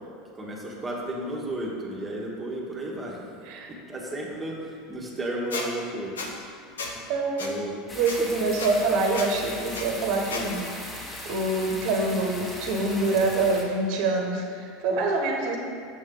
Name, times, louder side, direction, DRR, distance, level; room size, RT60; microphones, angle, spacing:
voice 1, 0.3-6.3 6.6-7.0 7.4-7.7, right 1 dB, 15° right, -3 dB, 1.4 m, -34 dB
Squeak, 5.5-5.7 6.2-6.3 6.8-6.9 7.4-7.5 8.1-8.2 8.6-8.7 9.1-9.3 9.7-9.9 10.3-10.4, left 4 dB, 85° left, 0.8 m, -33 dB
voice 2, 7.1-7.4 7.9-15.6, right 3 dB, 60° right, 2 dB, 1.0 m, -26 dB
sound 1, 7.9-13.6, left 1 dB, 20° left, 1.5 m, -38 dB
7.0 x 6.2 x 3.8 m, 2.3 s
hypercardioid pair, 85°, 0 cm